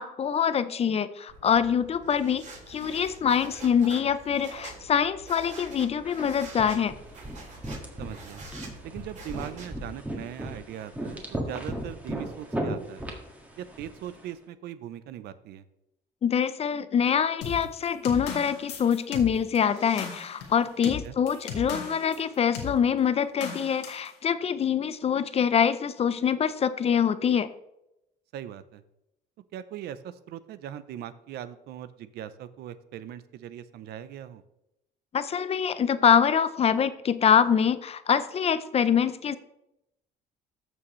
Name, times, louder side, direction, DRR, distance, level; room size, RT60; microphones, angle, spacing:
voice 1, 0.0-6.9 16.2-27.5 35.1-39.4, left 7 dB, 35° left, 14 dB, 0.5 m, -25 dB
sound 1, 1.3-9.9, right 2 dB, 45° right, 3.3 m, -46 dB
sound 2, 6.1-14.2, right 1 dB, 10° right, 1.7 m, -37 dB
voice 2, 8.0-8.4 8.8-13.0 13.6-15.6 20.8-21.1 28.3-28.8 29.5-34.4, right 11 dB, 75° right, 14 dB, 0.7 m, -40 dB
sound 3, 17.4-22.2 22.5-22.8 23.4-24.1, left 6 dB, 85° left, 1.7 m, -37 dB
13.5 x 6.3 x 3.1 m, 0.87 s
cardioid pair, 110°, 17 cm